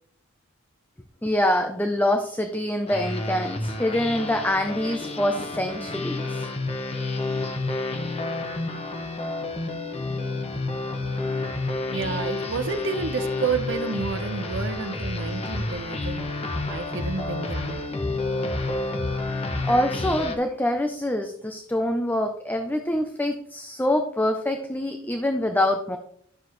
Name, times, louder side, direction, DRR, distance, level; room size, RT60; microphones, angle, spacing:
voice 1, 1.2-6.5 19.6-26.0, left 1 dB, 10° left, 6 dB, 0.5 m, -25 dB
sound 1, 2.9-20.4, left 2 dB, 30° left, 1.0 m, -30 dB
voice 2, 11.8-16.4 16.7-17.8, right 4 dB, 60° right, 7 dB, 1.0 m, -30 dB
12.0 x 7.0 x 3.1 m, 0.68 s
head